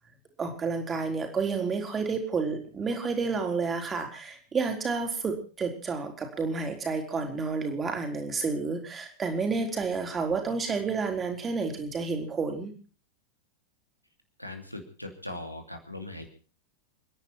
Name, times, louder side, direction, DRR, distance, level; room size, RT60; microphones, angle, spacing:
voice 1, 0.4-12.7, right 4 dB, 20° right, 4 dB, 4.0 m, -30 dB
voice 2, 14.4-16.3, left 1 dB, 90° left, 4 dB, 2.8 m, -40 dB
29.0 x 10.5 x 4.5 m, 0.37 s
figure-of-eight pair, 90°, 0 cm